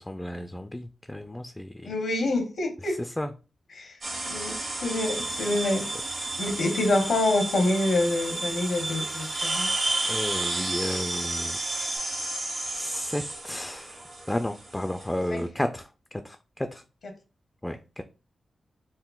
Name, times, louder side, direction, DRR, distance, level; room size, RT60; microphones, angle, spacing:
voice 1, 0.0-1.9 2.8-3.3 4.2-4.3 10.1-12.0 12.7-14.0 14.3-16.8 17.6-18.0, left 1 dB, 15° left, 0.3 m, -33 dB
voice 2, 1.8-3.0 3.7-4.0 4.2-5.8 6.4-9.7 15.3-15.4, left 2 dB, 75° left, 0.8 m, -26 dB
sound 1, 4.0-15.4, right 2 dB, 65° right, 1.2 m, -33 dB
sound 2, 4.8-12.0, right 2 dB, 45° right, 0.7 m, -36 dB
3.6 x 2.0 x 2.3 m
cardioid pair, 50°, 0 cm